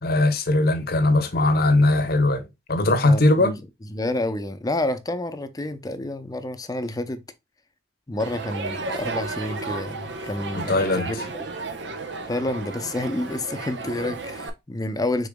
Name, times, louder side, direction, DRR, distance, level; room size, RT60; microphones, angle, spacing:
voice 1, 0.0-3.5 10.5-11.2, left 2 dB, 60° left, 1.0 m, -20 dB
voice 2, 3.0-3.5 3.9-7.2 8.1-11.3 12.3-15.3, left 1 dB, 20° left, 0.6 m, -29 dB
Crowd, 8.2-14.5, right 3 dB, 70° right, 0.9 m, -33 dB
5.2 x 4.0 x 2.2 m
head